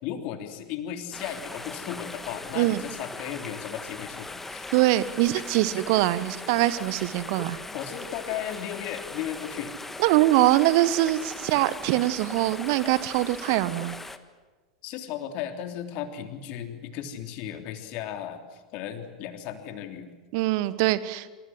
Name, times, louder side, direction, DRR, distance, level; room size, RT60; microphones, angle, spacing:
voice 1, 0.0-4.7 7.7-9.7 14.8-20.1, left 10 dB, 45° left, 6 dB, 3.4 m, -35 dB
sound 1, 1.1-14.2, left 3 dB, 10° left, 1.7 m, -39 dB
voice 2, 4.7-7.6 10.0-13.9 20.3-21.3, right 16 dB, 50° right, 16 dB, 1.3 m, -23 dB
27.0 x 26.5 x 7.9 m, 1.3 s
figure-of-eight pair, 85°, 3 cm